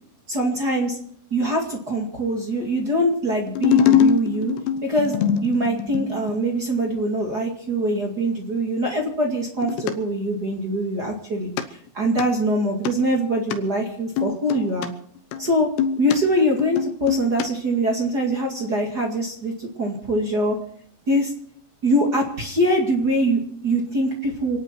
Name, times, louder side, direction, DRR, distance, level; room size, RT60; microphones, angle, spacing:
voice 1, 0.3-1.0 1.3-4.5 4.8-5.2 5.4-11.5 11.9-14.9 15.4-15.7 16.0-20.6 21.1-21.3 21.8-24.6, right 1 dB, 35° right, 0 dB, 1.7 m, -23 dB
sound 1, 3.5-6.5 9.6-9.9 11.6-11.7 12.0-12.2 12.9-13.0 13.5-13.6 14.2-14.9 15.3-16.2 16.6-17.5 17.7-17.8, left 8 dB, 70° left, 2.8 m, -22 dB
28.0 x 10.0 x 4.5 m, 0.63 s
omnidirectional pair, 5.2 m